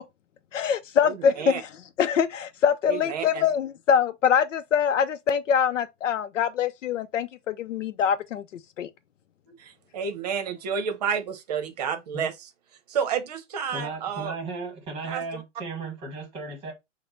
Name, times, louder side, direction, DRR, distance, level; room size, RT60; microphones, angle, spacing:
voice 1, 0.5-1.7 2.0-8.9, left 7 dB, 90° left, 0.6 m, -24 dB
voice 2, 1.0-1.6 2.9-3.5 9.6-12.3 12.9-14.3 15.0-15.4, right 7 dB, 35° right, 0.8 m, -30 dB
voice 3, 13.7-16.7, right 3 dB, 15° right, 1.2 m, -35 dB
5.7 x 2.2 x 4.0 m
hypercardioid pair, 155°, 37 cm